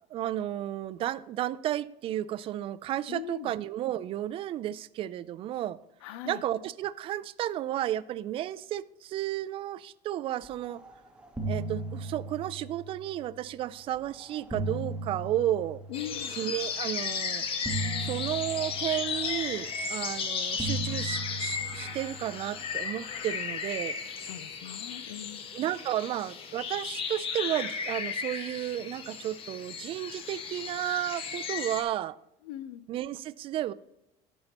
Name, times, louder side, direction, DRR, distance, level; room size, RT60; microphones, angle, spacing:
voice 1, 0.1-5.8 6.3-10.8 11.5-15.8 16.3-17.4 18.0-24.0 25.5-32.2 32.9-33.7, right 12 dB, 40° right, 0.3 m, -33 dB
voice 2, 3.1-3.5 6.0-6.4 15.9-16.3 24.2-25.4 32.4-32.8, left 12 dB, 90° left, 0.5 m, -40 dB
sound 1, 10.7-10.9 11.2-13.5 14.2-16.6 17.6-20.1 20.6-23.2, right 2 dB, 5° right, 1.0 m, -37 dB
sound 2, 15.9-31.8, left 6 dB, 40° left, 0.9 m, -35 dB
13.5 x 5.5 x 2.9 m
cardioid pair, 135°, 14 cm